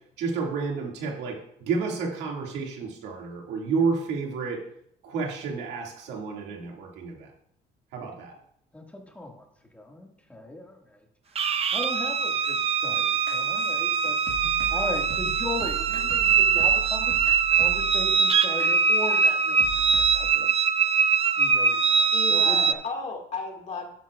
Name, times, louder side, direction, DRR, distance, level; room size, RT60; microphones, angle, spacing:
voice 1, 0.2-4.6 5.0-7.3 7.9-8.3, right 4 dB, 90° right, 0 dB, 2.2 m, -30 dB
voice 2, 8.7-9.5 9.7-11.1 11.7-14.2 14.7-17.2 17.5-20.6 21.4-22.8, left 1 dB, 10° left, 0 dB, 1.9 m, -38 dB
sound 1, 11.3-22.7, right 6 dB, 35° right, 0.6 m, -23 dB
sound 2, 13.3-18.1 18.6-18.7 19.3-19.4 19.6-20.2, right 7 dB, 65° right, 1.6 m, -38 dB
voice 3, 22.1-23.9, left 4 dB, 45° left, 2 dB, 2.0 m, -34 dB
11.0 x 9.8 x 2.4 m, 0.72 s
cardioid pair, 110°, 17 cm